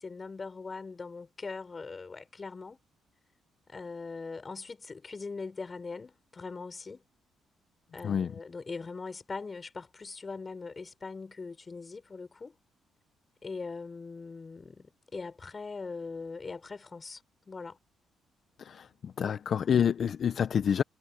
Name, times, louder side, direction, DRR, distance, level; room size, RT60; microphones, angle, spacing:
voice 1, 0.0-2.8 3.7-7.0 7.9-12.6 13.4-17.2 17.5-17.8 19.2-19.4, left 4 dB, 30° left, 6.7 m, -41 dB
voice 2, 19.2-20.8, left 8 dB, 55° left, 0.9 m, -27 dB
cardioid pair, 90°, 0 cm